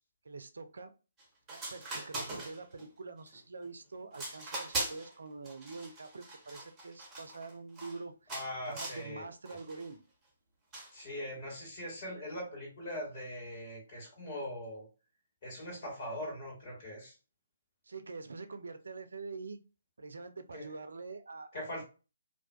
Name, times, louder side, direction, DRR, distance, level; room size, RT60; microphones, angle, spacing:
voice 1, 0.2-0.9 1.5-8.3 8.7-10.0 17.8-19.6 20.0-21.7, right 4 dB, 65° right, 10 dB, 0.3 m, -45 dB
sound 1, 1.2-1.3 1.5-2.9 3.3-3.7 4.1-5.1 5.4-8.0 8.3-9.1 9.5-9.9 10.7-11.0, right 2 dB, 15° right, 0.8 m, -41 dB
voice 2, 8.3-9.3 10.9-14.9 15.4-17.1 20.5-20.7 21.5-21.8, left 1 dB, 40° left, -2 dB, 1.5 m, -41 dB
2.5 x 2.2 x 2.3 m, 0.33 s
figure-of-eight pair, 135°, 0 cm